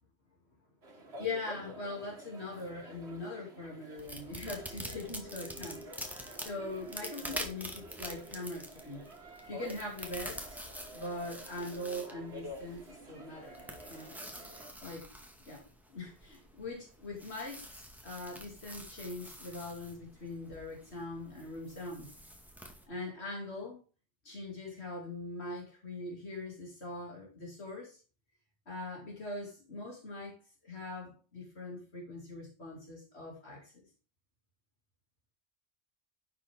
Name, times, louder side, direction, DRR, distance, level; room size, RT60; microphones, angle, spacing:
sound 1, 0.8-14.7, right 1 dB, 85° right, 2.0 m, -49 dB
voice 1, 0.9-5.8 6.4-9.0 9.5-10.6 10.9-13.6 13.9-14.1 14.8-15.1 15.5-15.6 15.9-22.1 22.9-23.8 24.2-28.0 28.7-30.4 30.6-33.8, left 2 dB, 85° left, -2 dB, 3.1 m, -42 dB
sound 2, 4.0-22.8, equal, ahead, 2.0 m, -47 dB
11.0 x 7.1 x 3.7 m, 0.33 s
omnidirectional pair, 1.1 m